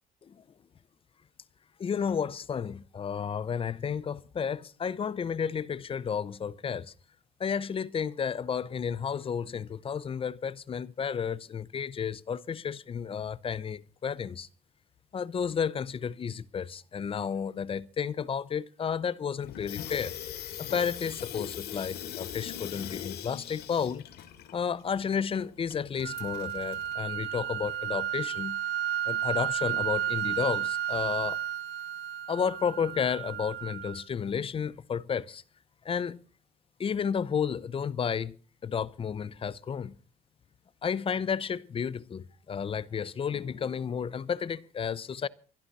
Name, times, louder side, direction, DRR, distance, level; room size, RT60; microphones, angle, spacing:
voice 1, 1.8-6.9 7.4-14.5 15.1-20.1 20.6-24.1 24.5-28.6 29.1-31.4 32.3-35.4 35.8-36.2 36.8-38.4 38.6-39.9 40.8-45.3, left 7 dB, 35° left, 0.7 m, -32 dB
Water tap faucet / Sink (filling or washing), 19.4-27.0, left 10 dB, 70° left, 2.3 m, -41 dB
sound 1, 26.0-34.0, right 11 dB, 75° right, 0.9 m, -32 dB
25.0 x 11.5 x 4.1 m
cardioid pair, 110°, 17 cm